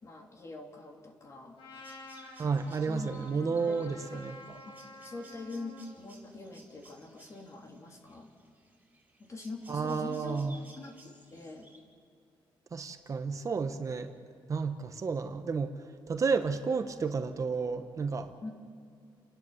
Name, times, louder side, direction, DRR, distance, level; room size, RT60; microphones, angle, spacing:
voice 1, 0.0-1.6 2.9-3.1 3.5-8.3 9.2-10.4 10.8-11.7 18.4-18.5, left 2 dB, 35° left, 2 dB, 3.0 m, -44 dB
Trumpet, 1.6-5.9, left 1 dB, 80° left, 7.0 m, -50 dB
sound 1, 1.7-11.8, right 2 dB, 15° right, 4.5 m, -59 dB
voice 2, 2.4-4.3 9.7-10.5 12.7-14.1 14.5-15.7 16.1-18.3, right 5 dB, 40° right, 7 dB, 1.1 m, -31 dB
30.0 x 11.0 x 7.9 m, 2.4 s
cardioid pair, 115°, 9 cm